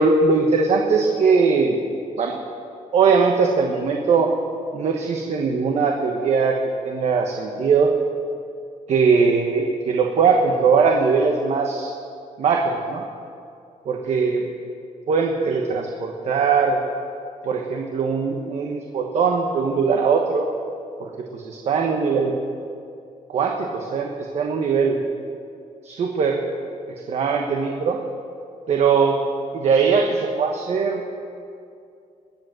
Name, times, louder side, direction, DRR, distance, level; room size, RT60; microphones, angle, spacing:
voice 1, 0.0-1.8 2.2-2.4 2.9-4.3 4.7-6.6 6.8-7.9 8.9-11.9 12.4-13.0 13.8-14.4 15.1-16.8 17.4-20.4 21.0-22.3 23.3-25.0 25.8-26.4 27.1-28.0 28.7-29.2 29.5-31.0, right 5 dB, 55° right, 2 dB, 1.2 m, -20 dB
21.0 x 8.0 x 7.7 m, 2.5 s
cardioid pair, 155°, 13 cm